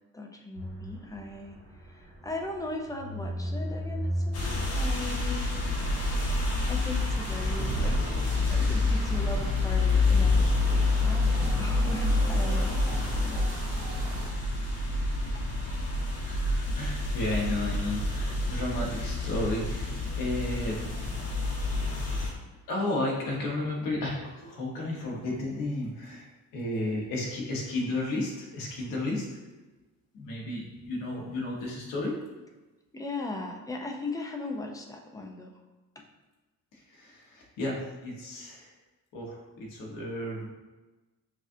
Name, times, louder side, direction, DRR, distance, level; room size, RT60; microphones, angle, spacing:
voice 1, 0.1-5.5 6.7-10.7 11.0-13.5 15.3-15.5 32.9-35.6 36.0-36.1, left 2 dB, 10° left, 1 dB, 0.4 m, -38 dB
sound 1, 0.6-7.2, equal, 70° right, 1.5 m, -37 dB
sound 2, 4.3-22.3, left 3 dB, 50° left, 1.0 m, -28 dB
sound 3, 6.9-14.3, right 2 dB, 85° right, 0.8 m, -35 dB
voice 2, 16.3-20.8 22.7-26.2 26.5-29.2 30.1-32.2 36.9-37.8 38.0-38.6 39.1-40.5, left 2 dB, 90° left, -3 dB, 1.2 m, -33 dB
6.2 x 2.4 x 2.6 m, 1.2 s
cardioid pair, 125°, 32 cm